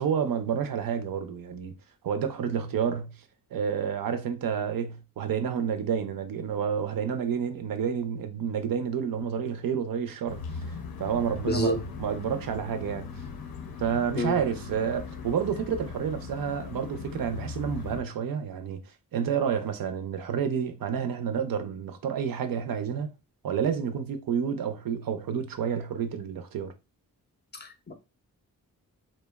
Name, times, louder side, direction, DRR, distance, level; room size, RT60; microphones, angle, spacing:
voice 1, 0.0-1.7 2.0-3.1 3.5-13.1 13.8-18.8 19.1-23.1 23.4-26.7, right 7 dB, 70° right, 0.5 m, -29 dB
sound 1, 10.3-18.0, left 5 dB, 80° left, 0.6 m, -39 dB
voice 2, 11.5-11.8 14.2-14.4 27.5-27.9, left 1 dB, 30° left, 0.4 m, -28 dB
2.7 x 2.0 x 2.2 m
wide cardioid pair, 80°, 36 cm